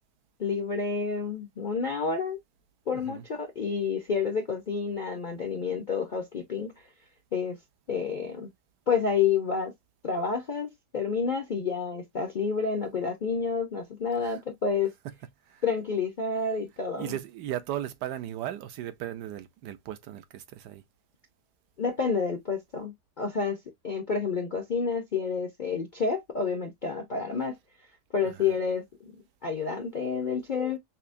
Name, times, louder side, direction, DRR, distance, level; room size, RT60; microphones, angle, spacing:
voice 1, 0.4-2.4 2.9-6.7 7.3-7.6 7.9-8.5 8.9-9.7 10.0-10.7 10.9-14.9 15.6-17.1 21.8-23.6 23.8-27.6 28.1-29.1 29.4-30.8, left 5 dB, 55° left, 0.5 m, -29 dB
voice 2, 2.9-3.2 14.2-14.4 15.0-15.1 15.5-15.6 17.0-20.8 28.2-28.5, right 12 dB, 75° right, 1.2 m, -37 dB
5.7 x 2.0 x 2.5 m
omnidirectional pair, 1.8 m